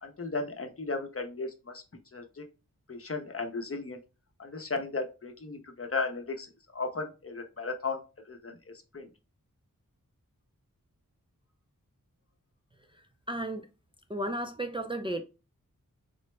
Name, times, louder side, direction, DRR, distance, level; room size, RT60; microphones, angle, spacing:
voice 1, 0.0-1.8 2.1-2.5 2.9-4.0 4.4-9.1, left 3 dB, 45° left, 0.7 m, -36 dB
voice 2, 13.3-13.7 14.1-15.2, right 1 dB, 15° right, 0.4 m, -33 dB
3.8 x 2.1 x 3.2 m
wide cardioid pair, 55°, 33 cm